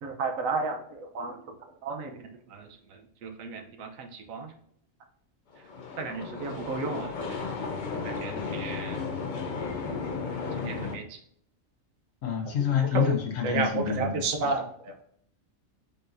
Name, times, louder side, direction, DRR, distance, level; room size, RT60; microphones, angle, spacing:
voice 1, 0.0-1.4 1.8-2.1 2.5-2.7 3.2-4.5 6.0-7.4 7.9-9.0 10.6-11.2 12.9-13.2 13.4-15.0, right 4 dB, 85° right, 4 dB, 1.2 m, -32 dB
sound 1, 5.5-11.0, left 4 dB, 45° left, 0.7 m, -34 dB
voice 2, 8.3-8.6 12.2-14.2, left 8 dB, 75° left, 1 dB, 1.4 m, -28 dB
5.2 x 4.1 x 2.5 m, 0.66 s
omnidirectional pair, 1.4 m